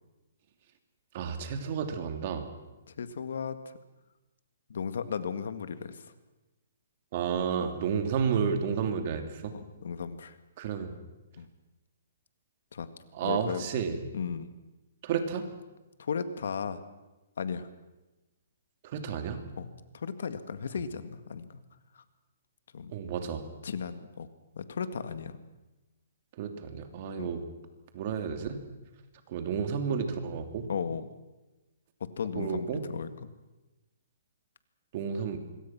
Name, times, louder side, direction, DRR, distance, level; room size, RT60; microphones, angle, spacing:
voice 1, 1.1-2.5 7.1-9.5 10.6-10.9 13.1-14.0 15.0-15.5 18.8-19.4 22.9-23.4 26.4-27.4 27.9-28.6 29.3-30.7 32.3-32.9 34.9-35.4, right 7 dB, 40° right, 6 dB, 2.9 m, -31 dB
voice 2, 2.9-3.6 4.7-6.0 7.3-7.4 9.5-10.4 11.4-11.5 12.7-12.9 13.2-13.7 14.1-14.5 16.0-16.8 17.4-17.7 19.6-19.7 19.9-21.5 22.0-22.1 22.7-22.9 23.6-24.3 24.6-25.3 27.2-27.3 30.7-31.1 32.2-33.3, left 6 dB, 70° left, 11 dB, 1.9 m, -35 dB
26.0 x 22.0 x 6.1 m, 1.1 s
hypercardioid pair, 160°, 0 cm